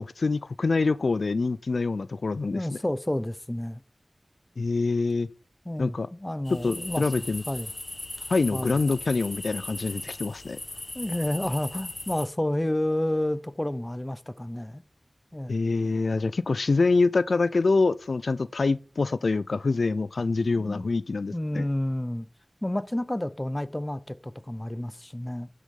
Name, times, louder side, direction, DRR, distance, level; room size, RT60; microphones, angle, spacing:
voice 1, 0.0-2.7 4.6-5.3 5.8-6.1 6.6-7.4 8.3-10.6 15.5-21.7, left 3 dB, 90° left, 0.3 m, -25 dB
voice 2, 2.5-3.8 5.7-7.7 8.5-8.8 10.9-14.8 15.3-15.6 20.6-20.9 21.3-22.3 22.6-25.5, left 1 dB, 20° left, 0.6 m, -30 dB
sound 1, 6.5-12.3, left 2 dB, 40° left, 1.1 m, -38 dB
11.5 x 6.4 x 3.7 m
wide cardioid pair, 60°, 0 cm